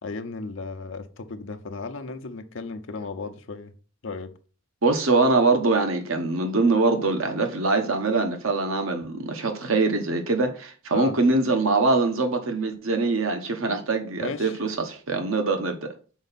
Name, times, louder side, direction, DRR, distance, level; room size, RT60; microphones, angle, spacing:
voice 1, 0.0-3.7 4.0-4.3 10.9-11.2 14.2-14.6, left 3 dB, 65° left, 0.7 m, -35 dB
voice 2, 4.8-15.9, right 3 dB, 80° right, 1.0 m, -23 dB
6.2 x 4.5 x 4.1 m
head